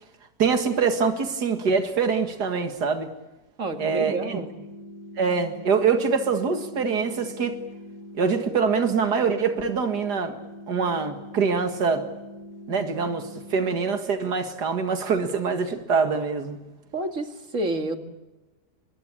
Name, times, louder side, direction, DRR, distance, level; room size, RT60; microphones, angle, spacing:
voice 1, 0.4-3.1 3.8-4.4 5.2-7.6 8.1-10.4 10.7-12.1 12.7-16.6, right 5 dB, 85° right, 7 dB, 2.5 m, -24 dB
voice 2, 3.6-4.5 16.9-18.0, right 2 dB, 50° right, 6 dB, 2.6 m, -29 dB
sound 1, 3.7-13.7, left 1 dB, 25° left, 7.4 m, -43 dB
26.5 x 21.5 x 8.8 m, 1.1 s
omnidirectional pair, 1.7 m